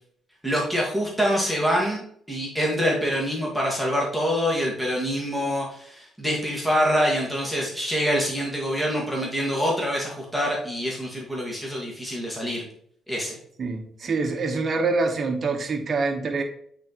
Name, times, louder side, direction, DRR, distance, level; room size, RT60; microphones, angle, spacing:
voice 1, 0.4-12.6 13.1-13.4, equal, ahead, -4 dB, 1.7 m, -25 dB
voice 2, 13.6-16.4, right 3 dB, 45° right, 5 dB, 1.0 m, -25 dB
8.2 x 3.9 x 3.0 m, 0.64 s
cardioid pair, 90°, 0 cm